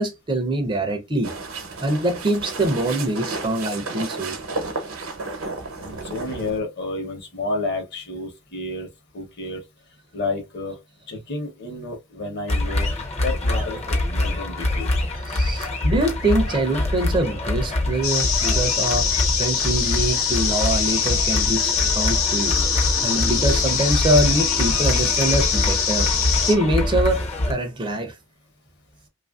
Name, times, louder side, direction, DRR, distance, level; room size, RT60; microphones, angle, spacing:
voice 1, 0.0-1.3 1.8-4.4 15.3-19.1 19.4-22.6 23.0-26.1 26.5-28.1, right 1 dB, 25° right, 0.4 m, -24 dB
sound 1, 1.2-6.6, right 3 dB, 85° right, 0.8 m, -32 dB
voice 2, 5.8-8.9 9.1-9.6 10.1-10.8 11.1-12.9 13.2-13.8 14.1-14.9, left 2 dB, 50° left, 0.8 m, -30 dB
sound 2, 12.5-27.5, left 1 dB, 30° left, 0.5 m, -25 dB
sound 3, 18.0-26.5, left 7 dB, 85° left, 0.8 m, -23 dB
2.8 x 2.4 x 2.3 m
head